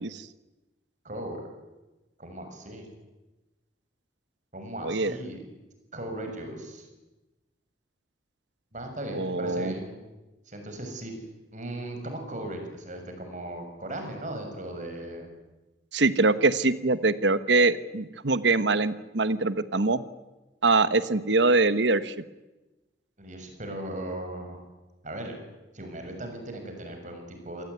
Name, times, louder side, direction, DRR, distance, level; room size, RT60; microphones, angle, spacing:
voice 1, 1.0-1.4 2.2-2.9 4.5-5.4 5.9-6.9 8.7-10.0 10.5-11.1 11.5-15.3 23.2-24.6 25.0-25.4 25.7-27.6, right 1 dB, 40° right, 5 dB, 6.5 m, -37 dB
voice 2, 9.1-9.7 15.9-20.0 20.6-22.2, right 3 dB, 75° right, 14 dB, 1.1 m, -23 dB
27.0 x 19.0 x 9.6 m, 1.1 s
head